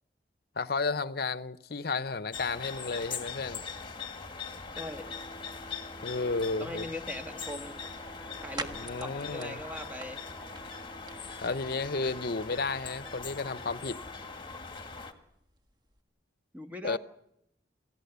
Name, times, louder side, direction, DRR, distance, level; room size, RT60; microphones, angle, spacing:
voice 1, 0.6-3.6 6.0-6.8 8.7-9.6 11.4-14.0 16.8-17.0, left 4 dB, 60° left, 0.8 m, -32 dB
sound 1, 2.3-15.1, left 5 dB, 30° left, 2.0 m, -41 dB
sound 2, 4.7-14.4, right 2 dB, 10° left, 2.0 m, -54 dB
voice 2, 4.7-5.1 6.6-7.8 8.4-10.2 16.5-17.0, left 1 dB, 10° right, 1.7 m, -40 dB
sound 3, 7.3-16.0, right 3 dB, 25° right, 1.6 m, -49 dB
28.5 x 16.5 x 8.2 m
head